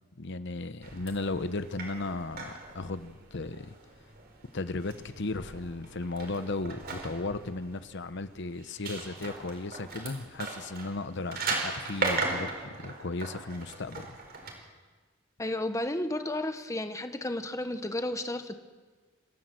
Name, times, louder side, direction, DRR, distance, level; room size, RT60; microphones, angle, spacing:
voice 1, 0.2-3.8 4.5-14.2, left 2 dB, 60° left, 11 dB, 0.9 m, -35 dB
sound 1, 0.8-14.5, right 3 dB, 50° right, 4.6 m, -38 dB
voice 2, 15.4-18.5, left 1 dB, 15° left, 8 dB, 1.3 m, -32 dB
27.0 x 15.5 x 7.7 m, 1.4 s
head